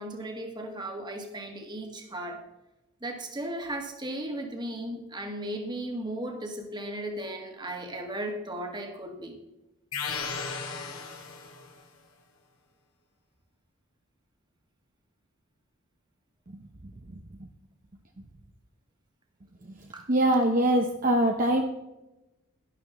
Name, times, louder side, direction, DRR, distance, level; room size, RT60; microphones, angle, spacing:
voice 1, 0.0-2.4 3.0-9.4 19.9-20.1, right 1 dB, 20° right, 3 dB, 1.5 m, -36 dB
sound 1, 9.9-11.8, left 5 dB, 75° left, 2.1 m, -35 dB
voice 2, 20.1-21.6, right 1 dB, 40° right, 3 dB, 0.8 m, -22 dB
12.0 x 12.0 x 3.5 m, 0.96 s
head